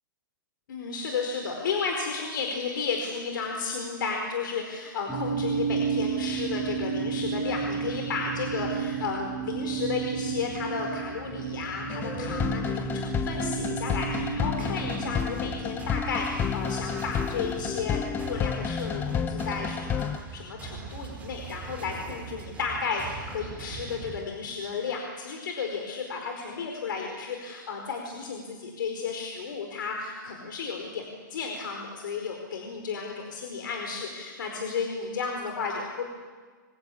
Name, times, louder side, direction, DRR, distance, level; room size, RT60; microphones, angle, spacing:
voice 1, 0.7-31.0 31.3-36.0, left 5 dB, 75° left, 2 dB, 4.7 m, -33 dB
sound 1, 5.1-15.1, right 6 dB, ahead, 6.4 m, -32 dB
sound 2, 11.9-20.2, left 7 dB, 20° left, 0.8 m, -31 dB
sound 3, 14.6-24.2, right 5 dB, 15° right, 4.4 m, -41 dB
27.0 x 24.0 x 8.6 m, 1.5 s
hypercardioid pair, 150°, 11 cm